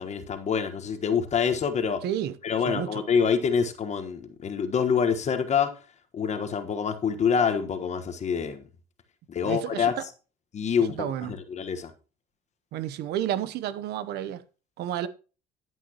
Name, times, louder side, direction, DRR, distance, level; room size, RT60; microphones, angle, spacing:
voice 1, 0.0-2.0 2.4-5.7 6.1-8.6 9.3-10.1 10.5-11.9, left 6 dB, 40° left, 1.3 m, -26 dB
voice 2, 2.0-2.3 2.7-2.9 9.4-9.9 11.0-11.3 12.7-14.4 14.8-15.1, right 11 dB, 80° right, 0.8 m, -30 dB
11.0 x 9.1 x 2.9 m
cardioid pair, 110°, 17 cm